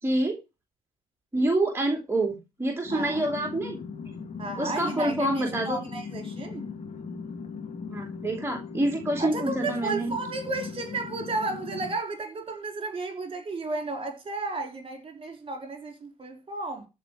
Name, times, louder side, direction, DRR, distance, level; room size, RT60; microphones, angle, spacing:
voice 1, 0.0-0.4 1.3-3.8 4.6-5.8 7.9-10.1, right 1 dB, 10° right, 2.9 m, -27 dB
sound 1, 2.8-11.9, left 5 dB, 35° left, 2.4 m, -38 dB
voice 2, 4.4-6.7 9.2-16.9, right 3 dB, 30° right, 3.7 m, -33 dB
14.0 x 4.8 x 7.8 m
figure-of-eight pair, 55°, 19 cm